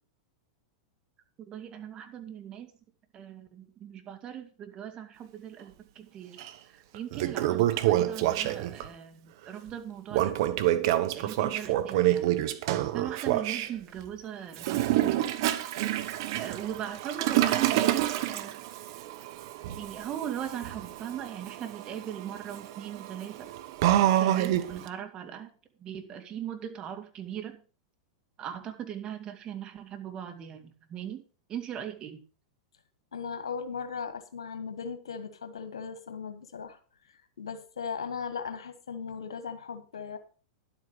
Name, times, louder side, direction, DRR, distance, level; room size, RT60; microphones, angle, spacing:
voice 1, 1.4-2.7 3.1-6.4 6.7-10.4 11.1-12.4 12.8-15.4 16.4-18.6 19.8-23.5 24.2-25.5 25.8-27.6 28.4-31.2 31.5-32.2, right 9 dB, 35° right, 6 dB, 2.2 m, -39 dB
Toilet flush, 6.4-6.5 6.9-8.9 10.1-13.7 14.5-24.9, right 13 dB, 55° right, 1.1 m, -28 dB
voice 2, 33.1-36.8 37.1-40.2, left 6 dB, 80° left, 9 dB, 1.6 m, -38 dB
11.5 x 8.2 x 5.1 m, 0.38 s
hypercardioid pair, 100°, 3 cm